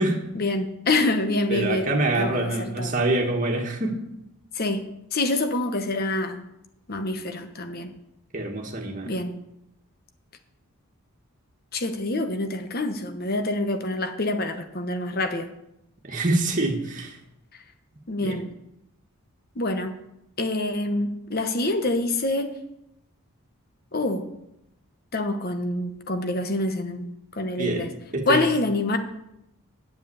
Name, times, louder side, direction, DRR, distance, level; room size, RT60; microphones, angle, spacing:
voice 1, 0.3-1.9 2.1-2.9 4.5-4.8 5.1-6.4 6.9-7.9 9.0-9.4 11.7-15.5 18.1-18.5 19.5-20.0 20.4-22.5 23.9-24.3 25.1-27.1 27.3-27.9 28.3-29.0, left 2 dB, 45° left, 8 dB, 1.1 m, -26 dB
voice 2, 1.5-4.1 8.3-9.1 16.0-17.2 18.2-18.4 27.6-27.8 28.1-28.5, right 2 dB, 35° right, 1 dB, 1.7 m, -25 dB
8.3 x 7.5 x 8.7 m, 0.84 s
head